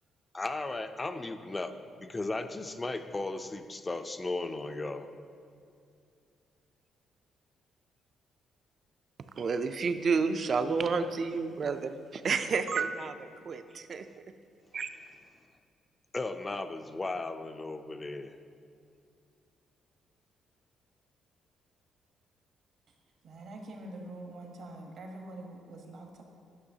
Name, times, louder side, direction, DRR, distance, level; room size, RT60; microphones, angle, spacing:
voice 1, 0.3-5.1 16.1-18.3, left 2 dB, 25° left, 9 dB, 0.4 m, -36 dB
voice 2, 9.4-13.1 13.4-14.0 14.7-14.9, right 5 dB, 50° right, 10 dB, 0.4 m, -30 dB
voice 3, 23.2-26.2, right 1 dB, 65° right, 2 dB, 1.0 m, -45 dB
9.6 x 5.5 x 2.7 m, 2.4 s
cardioid pair, 90°, 0 cm